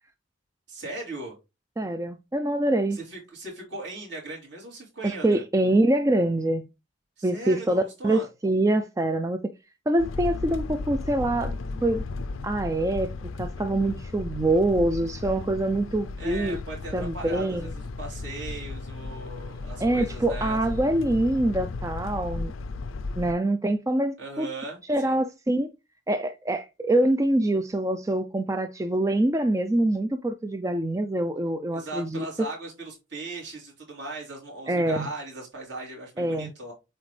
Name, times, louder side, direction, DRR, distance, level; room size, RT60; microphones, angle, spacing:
voice 1, 0.7-1.4 2.9-5.4 7.2-8.3 16.2-20.6 24.2-25.2 31.7-36.7, right 2 dB, 55° right, 3.6 m, -38 dB
voice 2, 1.8-3.0 5.0-6.6 7.2-9.4 9.9-11.5 11.8-12.0 12.4-13.1 13.4-16.6 16.9-17.7 19.8-22.5 23.2-24.5 24.9-25.7 26.1-32.3 34.7-35.1 36.2-36.5, right 1 dB, 15° right, 0.3 m, -25 dB
sound 1, 10.0-23.3, left 3 dB, 75° left, 0.5 m, -35 dB
7.7 x 4.4 x 3.2 m
head